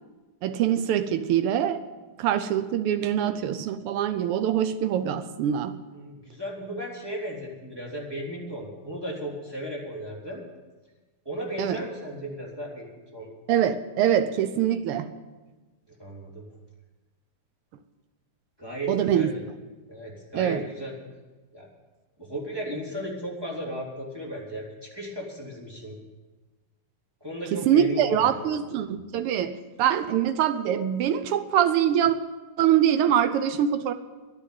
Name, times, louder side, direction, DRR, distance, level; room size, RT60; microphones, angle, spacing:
voice 1, 0.4-1.8 2.2-5.8 11.6-11.8 13.5-15.1 18.9-19.3 20.3-20.6 27.5-32.2 32.6-33.9, right 10 dB, 85° right, 10 dB, 1.2 m, -24 dB
voice 2, 5.9-10.4 11.2-13.3 15.9-16.4 18.6-19.4 19.9-20.9 21.5-21.7 22.2-26.0 27.2-28.5, equal, 10° right, -4 dB, 3.0 m, -35 dB
11.0 x 10.0 x 9.3 m, 1.2 s
omnidirectional pair, 3.3 m